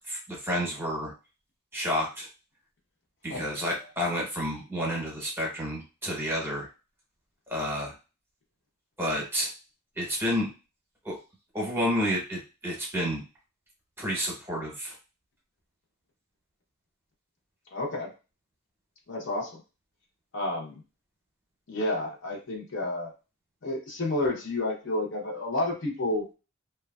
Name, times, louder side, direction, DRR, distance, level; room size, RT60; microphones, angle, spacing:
voice 1, 0.1-1.1 1.7-2.3 3.2-6.7 7.5-7.9 9.0-9.5 10.0-10.5 11.0-11.1 11.5-13.2 14.0-14.9, equal, 10° right, -2 dB, 0.9 m, -30 dB
voice 2, 17.7-18.1 19.1-19.6 20.3-20.8 21.7-23.1 23.6-26.3, left 2 dB, 60° left, -1 dB, 0.8 m, -30 dB
3.0 x 2.3 x 2.3 m, 0.31 s
head